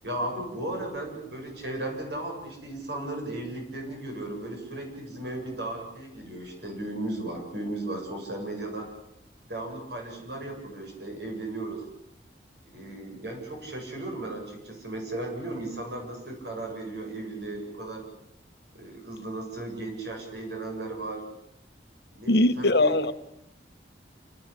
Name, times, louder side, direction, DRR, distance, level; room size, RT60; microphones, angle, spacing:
voice 1, 0.0-8.9 9.5-11.9 12.6-18.1 18.7-21.2 22.1-23.0, right 2 dB, 70° right, 2 dB, 8.0 m, -35 dB
voice 2, 22.3-23.1, left 2 dB, 65° left, 10 dB, 1.4 m, -21 dB
27.5 x 19.5 x 8.5 m, 0.78 s
head